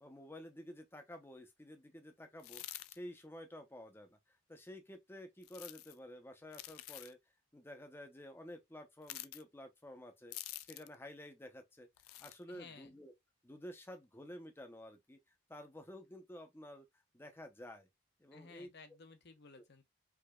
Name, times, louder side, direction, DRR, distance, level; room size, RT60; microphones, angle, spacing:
voice 1, 0.0-2.6 2.9-7.2 7.5-10.4 10.6-11.9 12.2-13.1 13.4-17.9 18.2-18.7 19.5-19.7, left 1 dB, 10° left, 0.6 m, -51 dB
sound 1, 2.4-3.0 5.4-6.0 6.5-7.1 9.0-9.4 10.3-11.0 12.0-12.4, left 16 dB, 85° left, 0.3 m, -48 dB
voice 2, 12.5-13.0 18.3-19.8, left 4 dB, 55° left, 0.7 m, -56 dB
4.7 x 2.8 x 2.3 m
head